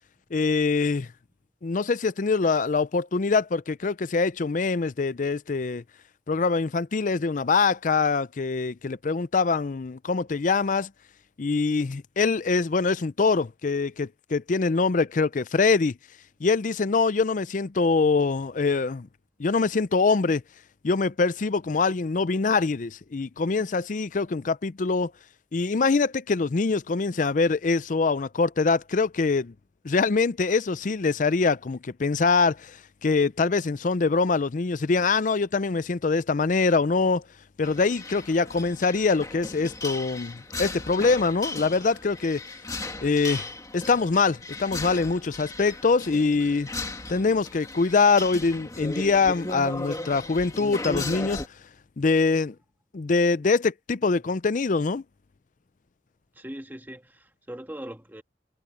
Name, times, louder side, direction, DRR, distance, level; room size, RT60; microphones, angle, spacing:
voice 1, 0.3-1.1 1.6-5.8 6.3-10.9 11.4-16.0 16.4-19.1 19.4-20.4 20.8-25.1 25.5-29.5 29.8-37.2 37.6-42.4 43.0-46.7 47.1-51.4 52.0-52.6 52.9-55.0, left 4 dB, 45° left, 0.5 m, -24 dB
sound 1, 37.6-51.5, left 2 dB, 20° left, 2.2 m, -36 dB
voice 2, 56.3-58.2, right 1 dB, 10° right, 1.7 m, -40 dB
head